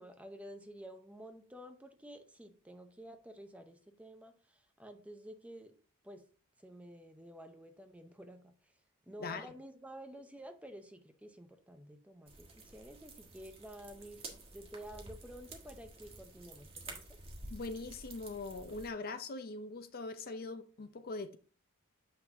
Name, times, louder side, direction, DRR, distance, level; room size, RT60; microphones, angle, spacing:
voice 1, 0.0-5.7 6.0-6.2 6.6-8.7 9.1-17.1, equal, 5° right, 0.6 m, -51 dB
voice 2, 9.2-9.5 17.5-21.4, left 3 dB, 40° left, 0.5 m, -42 dB
sound 1, 12.3-18.9, right 2 dB, 25° right, 1.4 m, -51 dB
7.5 x 5.8 x 2.6 m
head